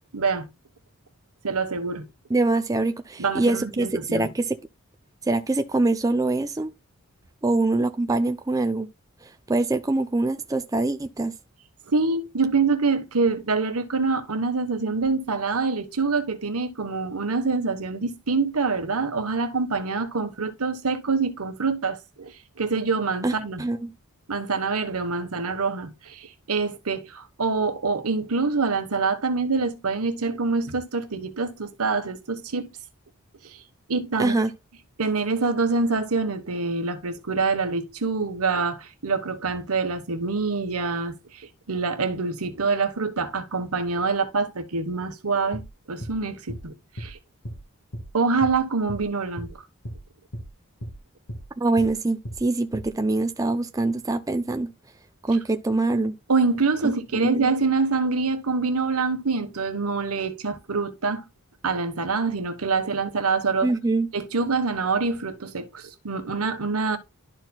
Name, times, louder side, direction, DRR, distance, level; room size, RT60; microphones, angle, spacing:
voice 1, 0.1-0.5 1.4-2.1 3.2-4.3 11.9-22.3 22.6-23.6 24.3-32.7 33.5-33.6 33.9-34.4 35.0-45.6 45.9-47.2 48.1-49.6 56.3-61.2 61.6-63.7 64.1-67.0, right 4 dB, 80° right, 1.2 m, -25 dB
voice 2, 2.3-4.6 5.3-6.7 7.4-8.9 9.2-11.3 23.2-23.9 34.2-34.5 51.6-54.7 55.2-56.1 56.8-57.5 63.6-64.1, right 2 dB, 15° right, 0.4 m, -24 dB
sound 1, 45.5-45.7 46.0-46.2 46.5-46.6 47.0-47.1 47.4-47.6 47.9-48.1 48.4-48.6 48.9-49.0 49.4-49.5 49.8-50.0 50.3-50.5 50.8-51.0 51.3-51.4 51.8-51.9 52.2-52.4 52.7-52.9, equal, 65° left, 1.7 m, -35 dB
12.0 x 4.3 x 2.3 m
head